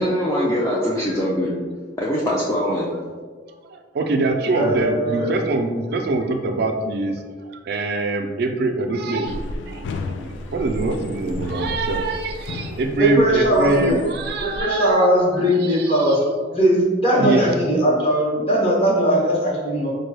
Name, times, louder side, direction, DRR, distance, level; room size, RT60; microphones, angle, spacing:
voice 1, 0.0-1.5 2.0-2.9, equal, 15° left, -6 dB, 0.4 m, -22 dB
voice 2, 3.4-7.2 7.6-16.2 17.2-17.5, right 2 dB, 60° right, 4 dB, 0.4 m, -24 dB
voice 3, 4.5-5.3 13.0-14.0 14.4-16.2 16.5-19.9, right 1 dB, 35° left, -3 dB, 0.9 m, -19 dB
sound 1, 9.2-14.6, left 2 dB, 90° left, 0.3 m, -32 dB
4.3 x 2.2 x 3.2 m, 1.5 s
head